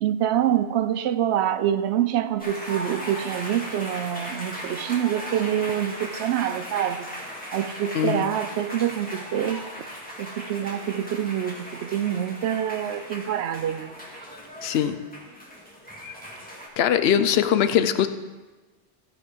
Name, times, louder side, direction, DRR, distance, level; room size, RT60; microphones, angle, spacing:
voice 1, 0.0-7.1 7.5-9.7 10.2-13.9, right 10 dB, 85° right, 13 dB, 0.9 m, -26 dB
sound 1, 2.4-16.7, equal, 10° left, 2.0 m, -38 dB
voice 2, 7.9-8.3 14.6-15.0 16.8-18.1, left 9 dB, 75° left, 11 dB, 0.8 m, -21 dB
14.5 x 5.2 x 5.3 m, 1.2 s
omnidirectional pair, 1.1 m